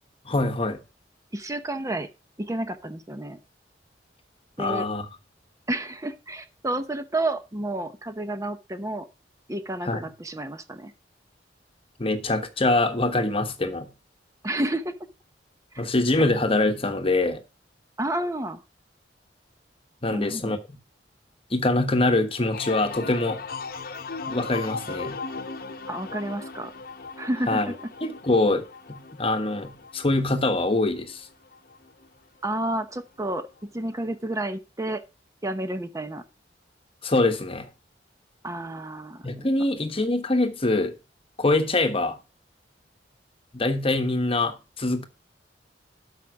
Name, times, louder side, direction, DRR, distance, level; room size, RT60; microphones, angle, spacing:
voice 1, 0.2-0.8 4.6-5.1 9.8-10.1 12.0-13.9 15.8-17.4 20.0-20.8 21.5-23.4 24.3-25.2 27.5-27.7 28.0-31.3 37.0-37.7 39.2-40.9 41.4-42.2 43.5-45.1, left 2 dB, 30° left, 1.1 m, -24 dB
voice 2, 1.3-2.1 2.4-3.4 4.6-4.9 5.7-9.1 9.5-10.9 14.4-14.9 18.0-18.6 20.1-20.6 25.9-26.7 27.2-27.7 32.4-33.5 33.7-35.0 35.4-36.2 38.4-39.3, right 1 dB, 20° right, 0.9 m, -30 dB
sound 1, 22.5-32.1 32.4-33.0, left 4 dB, 55° left, 1.0 m, -38 dB
12.5 x 5.4 x 4.8 m
head